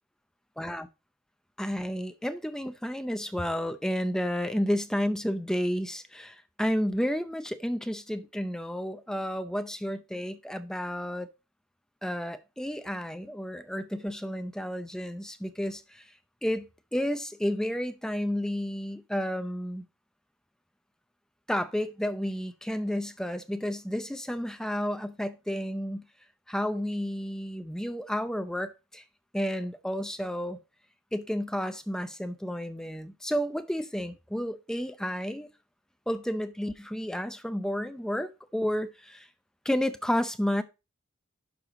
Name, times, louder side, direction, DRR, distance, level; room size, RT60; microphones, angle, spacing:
voice 1, 0.6-0.9 1.6-11.3 12.0-16.0 16.4-19.8 21.5-26.0 26.5-29.0 29.3-30.6 31.1-35.5 36.1-39.3 39.6-40.6, equal, 5° left, 0.5 m, -31 dB
11.5 x 4.8 x 3.7 m
head